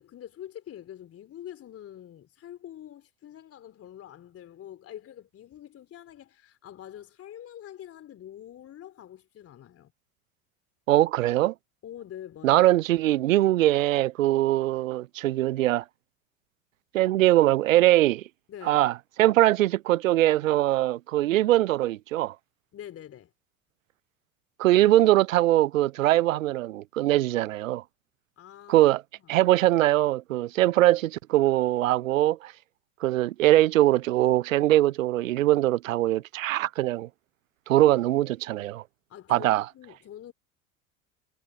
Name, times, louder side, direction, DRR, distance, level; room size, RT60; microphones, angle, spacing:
voice 1, 0.0-9.9 11.8-12.6 18.5-18.8 22.7-23.3 28.4-28.9 29.2-29.3 39.1-40.3, left 11 dB, 35° left, 3.7 m, -45 dB
voice 2, 10.9-11.5 12.4-15.8 16.9-18.2 18.6-18.9 19.2-22.3 24.6-27.8 28.7-29.0 29.3-32.5 33.0-37.1 37.7-38.8 39.3-39.6, right 15 dB, 65° right, 0.7 m, -22 dB
figure-of-eight pair, 70°, 42 cm